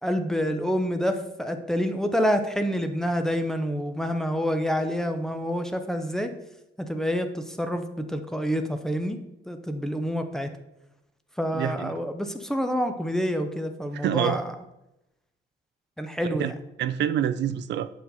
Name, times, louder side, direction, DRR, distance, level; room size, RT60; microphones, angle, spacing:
voice 1, 0.0-6.3 6.8-9.2 9.5-10.5 11.4-14.5 16.0-16.5, equal, 5° left, 6 dB, 0.6 m, -27 dB
voice 2, 11.5-11.9 13.9-14.4 16.3-16.5 16.8-17.9, right 10 dB, 70° right, 13 dB, 0.4 m, -26 dB
7.6 x 4.6 x 4.1 m, 0.89 s
cardioid pair, 140°, 19 cm